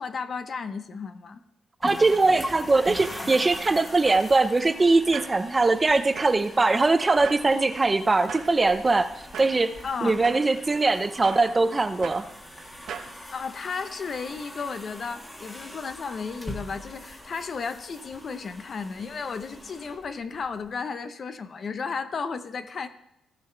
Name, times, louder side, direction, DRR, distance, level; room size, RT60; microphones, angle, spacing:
voice 1, 0.0-1.4 9.8-10.2 13.3-22.9, left 5 dB, 45° left, 10 dB, 0.7 m, -34 dB
sound 1, 1.8-20.7, left 1 dB, 15° left, 1.5 m, -42 dB
voice 2, 1.8-9.7 10.0-12.2, right 3 dB, 20° right, 10 dB, 0.6 m, -21 dB
sound 2, 2.7-13.2, right 7 dB, 70° right, 0.9 m, -44 dB
16.5 x 5.7 x 4.5 m, 0.81 s
cardioid pair, 105°, 0 cm